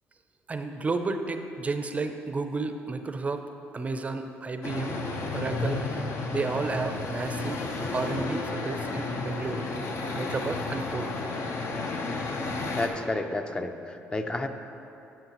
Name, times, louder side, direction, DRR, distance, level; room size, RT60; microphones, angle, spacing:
voice 1, 0.5-3.4 3.7-5.0 5.3-6.1 6.3-7.6 7.9-9.6 10.1-11.1, right 3 dB, 30° right, 7 dB, 0.5 m, -32 dB
sound 1, 4.6-12.9, left 3 dB, 60° left, 0.8 m, -32 dB
voice 2, 12.8-14.5, left 2 dB, 20° left, 7 dB, 0.5 m, -31 dB
11.5 x 6.4 x 3.0 m, 2.8 s
supercardioid pair, 80°, 5 cm